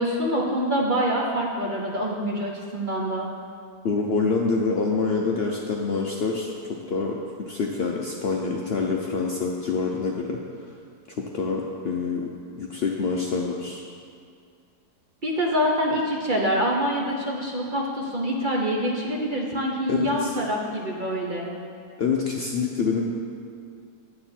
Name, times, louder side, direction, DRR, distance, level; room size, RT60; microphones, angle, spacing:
voice 1, 0.0-3.3 15.2-21.5, equal, 40° right, -2 dB, 0.7 m, -25 dB
voice 2, 3.8-6.5 6.9-7.2 7.5-10.4 11.2-12.2 12.5-13.8 19.9-20.3 22.0-23.1, left 4 dB, 70° left, -1 dB, 0.6 m, -26 dB
8.9 x 7.5 x 4.3 m, 2.3 s
omnidirectional pair, 1.8 m